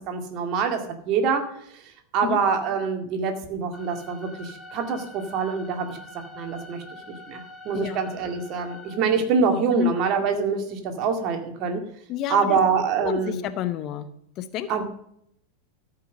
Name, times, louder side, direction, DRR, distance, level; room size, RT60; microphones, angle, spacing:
voice 1, 0.1-0.8 1.1-1.4 1.7-1.8 2.1-6.0 6.3-6.8 7.3-11.8 12.3-13.4 14.7-14.8, right 5 dB, 40° right, 5 dB, 2.1 m, -25 dB
sound 1, 3.7-9.0, left 1 dB, 5° left, 2.5 m, -44 dB
voice 2, 12.1-14.1 14.4-14.8, left 12 dB, 35° left, 12 dB, 0.8 m, -30 dB
13.5 x 5.8 x 6.5 m, 0.71 s
figure-of-eight pair, 90°, 0 cm